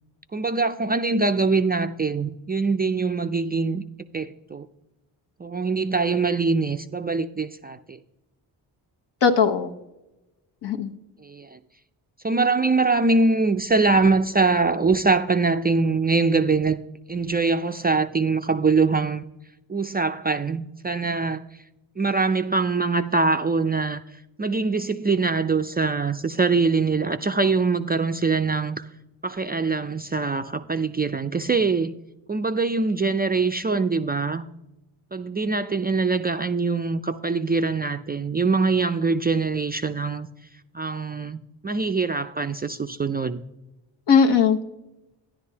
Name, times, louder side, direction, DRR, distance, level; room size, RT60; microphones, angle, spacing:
voice 1, 0.3-3.8 4.1-4.7 5.4-8.0 11.2-11.6 12.2-16.8 17.1-19.2 19.7-21.4 22.0-24.0 24.4-28.9 29.2-31.9 32.3-34.5 35.1-40.3 40.7-43.4, right 4 dB, 20° right, 0.4 m, -23 dB
voice 2, 9.2-9.7 10.6-10.9 44.1-44.6, left 6 dB, 60° left, 1.2 m, -18 dB
10.5 x 10.5 x 2.8 m
supercardioid pair, 55°, 47 cm